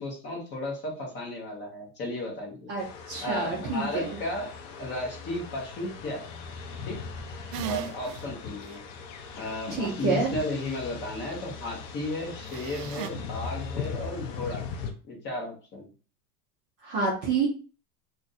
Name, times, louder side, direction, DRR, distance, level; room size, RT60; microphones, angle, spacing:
voice 1, 0.0-2.7 3.2-4.5 4.8-6.3 6.9-7.0 7.6-8.8 9.3-14.7 15.0-15.8, left 1 dB, 25° left, -1 dB, 0.9 m, -34 dB
voice 2, 2.7-4.2 9.7-10.4 16.8-17.5, right 4 dB, 25° right, -3 dB, 0.4 m, -28 dB
sound 1, 2.8-14.9, left 5 dB, 50° left, 0.6 m, -39 dB
sound 2, 7.5-8.2 8.7-8.8 12.5-13.1, right 10 dB, 85° right, 0.5 m, -36 dB
2.5 x 2.5 x 4.0 m, 0.35 s
supercardioid pair, 165°, 47 cm